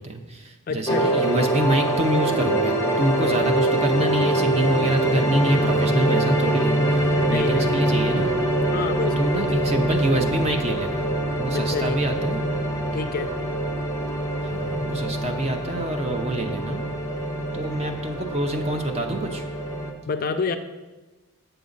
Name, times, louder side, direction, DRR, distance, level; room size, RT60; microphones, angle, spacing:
voice 1, 0.0-8.3 9.2-11.1 11.4-12.4 14.4-16.9 17.5-19.4, right 1 dB, 30° right, 4 dB, 0.6 m, -26 dB
voice 2, 0.7-1.2 7.2-7.9 8.7-9.8 11.5-12.0 12.9-13.4 20.1-20.6, left 4 dB, 40° left, 8 dB, 0.3 m, -28 dB
sound 1, 0.9-19.9, right 1 dB, 15° left, 0.7 m, -24 dB
7.9 x 6.2 x 3.9 m, 1.2 s
head